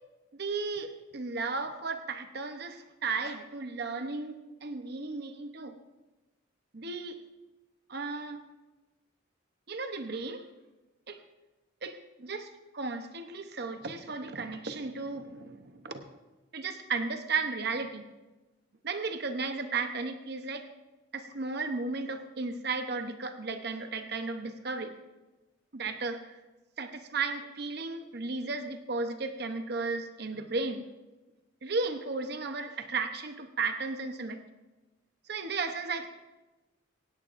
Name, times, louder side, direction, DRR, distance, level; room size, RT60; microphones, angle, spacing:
voice 1, 0.3-5.8 6.7-7.2 7.9-8.4 9.7-10.4 11.1-11.2 11.8-16.0 16.5-18.0 18.8-20.6 21.1-25.0 25.7-26.4 26.8-30.9 31.6-34.4 35.3-36.1, right 4 dB, 50° right, 8 dB, 0.8 m, -34 dB
17.5 x 17.0 x 2.6 m, 1.1 s
head